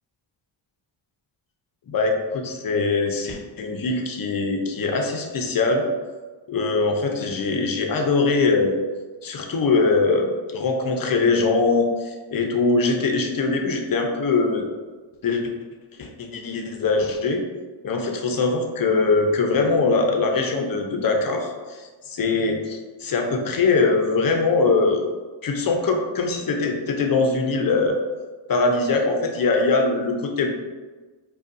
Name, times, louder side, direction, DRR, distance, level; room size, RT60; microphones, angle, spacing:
voice 1, 1.9-5.8 6.5-8.8 9.2-14.7 15.2-15.5 16.0-17.4 17.8-25.0 25.4-28.0 28.5-30.5, left 3 dB, 45° left, 3 dB, 0.6 m, -22 dB
5.1 x 2.4 x 2.6 m, 1.3 s
cardioid pair, 95°, 48 cm